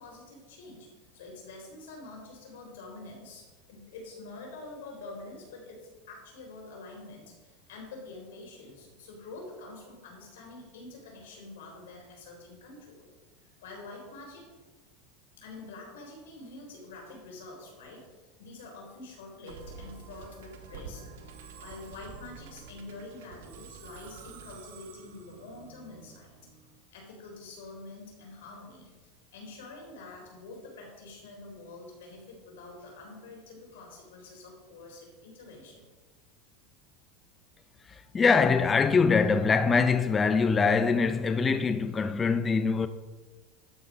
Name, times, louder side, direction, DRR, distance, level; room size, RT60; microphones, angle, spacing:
voice 1, 0.0-13.0 13.4-14.5 15.4-26.3 26.9-35.9, left 2 dB, 90° left, 3.9 m, -46 dB
Musical instrument, 19.5-26.8, right 5 dB, 85° right, 1.4 m, -48 dB
voice 2, 37.8-42.9, left 5 dB, 20° left, 0.5 m, -24 dB
12.5 x 5.6 x 5.3 m
supercardioid pair, 130°, 0 cm